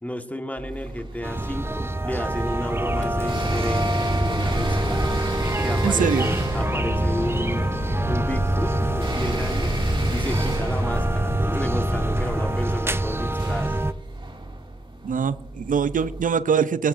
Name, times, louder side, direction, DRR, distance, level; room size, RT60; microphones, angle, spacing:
voice 1, 0.0-3.9 4.2-5.0 5.6-7.6 8.1-9.7 10.1-13.7, left 1 dB, 10° left, 5 dB, 1.4 m, -32 dB
sound 1, 0.6-16.2, right 2 dB, 35° right, 2.2 m, -35 dB
sound 2, 1.2-13.9, right 2 dB, 20° right, 0.6 m, -25 dB
sound 3, 2.9-12.6, left 1 dB, 65° left, 2.2 m, -30 dB
voice 2, 5.8-6.3 15.0-16.9, right 6 dB, 85° right, 15 dB, 0.4 m, -23 dB
15.5 x 12.0 x 2.6 m, 0.82 s
cardioid pair, 45°, 14 cm